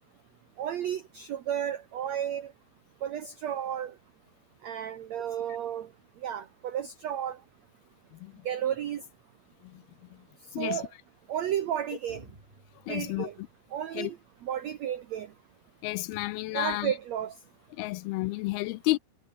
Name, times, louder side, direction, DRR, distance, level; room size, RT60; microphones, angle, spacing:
voice 1, 0.6-2.5 3.0-3.9 4.6-5.9 6.2-7.4 8.4-9.0 10.6-10.9 11.3-12.2 12.9-13.3 13.7-14.2 14.4-15.3 16.5-17.3, right 10 dB, 80° right, 1.5 m, -32 dB
sound 1, 12.1-13.6 16.1-16.7, right 1 dB, 10° right, 4.7 m, -53 dB
voice 2, 12.9-13.3 13.9-14.1 15.8-16.9 17.7-19.0, left 20 dB, 80° left, 2.3 m, -31 dB
omnidirectional pair, 4.7 m